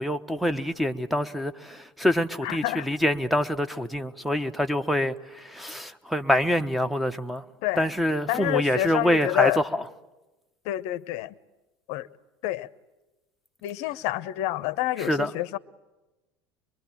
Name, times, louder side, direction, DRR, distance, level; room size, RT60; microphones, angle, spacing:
voice 1, 0.0-7.4 7.8-9.6 15.0-15.3, equal, ahead, 1.2 m, -26 dB
voice 2, 2.4-2.9 7.6-7.9 8.3-9.6 10.6-11.3 11.9-12.1 12.4-12.7 13.6-15.6, left 16 dB, 55° left, 0.9 m, -28 dB
24.0 x 23.0 x 9.0 m
hypercardioid pair, 80°, 13 cm